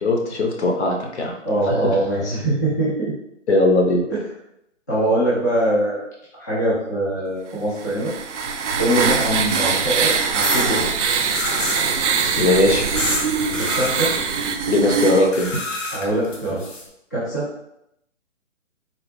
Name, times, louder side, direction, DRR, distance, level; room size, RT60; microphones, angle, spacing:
voice 1, 0.0-1.3 1.7-2.0 3.5-4.0 12.4-12.9 14.7-15.5, left 2 dB, 60° left, 1 dB, 0.8 m, -19 dB
voice 2, 1.4-3.1 4.1-4.2 4.9-6.0 6.3-8.1 8.8-10.9 13.5-14.2 15.9-16.6 17.1-17.5, right 1 dB, 15° left, -9 dB, 0.4 m, -22 dB
sound 1, 7.8-15.3, right 5 dB, 70° right, 0.5 m, -22 dB
sound 2, 8.7-9.8 10.4-10.7 11.3-11.9 13.0-13.2 13.5-13.9 15.3-16.8, left 2 dB, 80° left, 1.1 m, -28 dB
3.9 x 2.0 x 3.2 m, 0.80 s
figure-of-eight pair, 145°, 38 cm